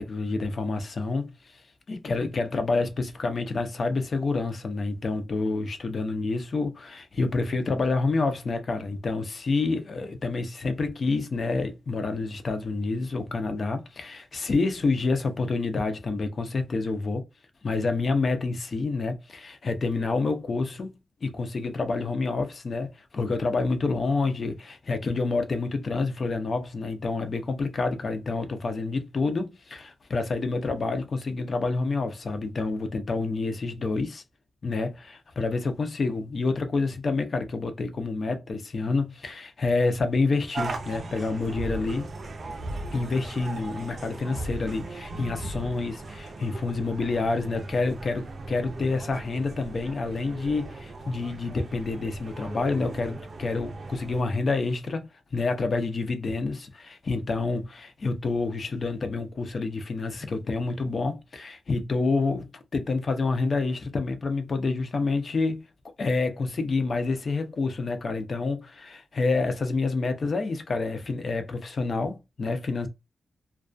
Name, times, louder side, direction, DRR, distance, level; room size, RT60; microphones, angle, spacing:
voice 1, 0.0-1.6 1.9-17.2 17.6-21.0 21.2-34.2 34.6-42.1 42.9-65.7 66.0-72.9, left 3 dB, 45° left, 0.5 m, -28 dB
sound 1, 40.5-54.2, right 2 dB, 50° right, 0.5 m, -38 dB
2.2 x 2.2 x 2.5 m
wide cardioid pair, 130°, 0 cm